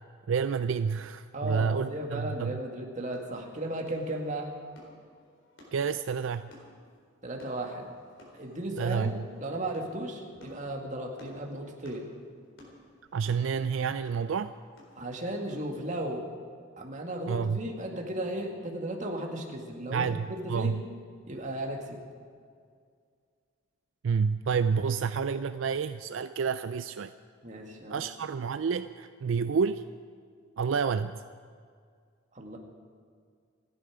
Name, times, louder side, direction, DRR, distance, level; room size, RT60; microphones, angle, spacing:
voice 1, 0.3-2.5 5.7-6.5 8.8-9.2 13.1-14.5 17.3-17.6 19.9-20.8 24.0-27.1 27.9-29.8 30.6-31.2, right 6 dB, 75° right, 11 dB, 0.4 m, -29 dB
voice 2, 1.3-4.5 7.2-7.9 8.3-12.1 15.0-16.3 16.8-20.8 21.3-22.0 27.4-28.1 32.3-32.6, right 1 dB, 40° right, 1 dB, 2.0 m, -35 dB
sound 1, 3.1-15.8, left 1 dB, 65° left, 4.2 m, -56 dB
28.0 x 10.5 x 5.0 m, 2.1 s
head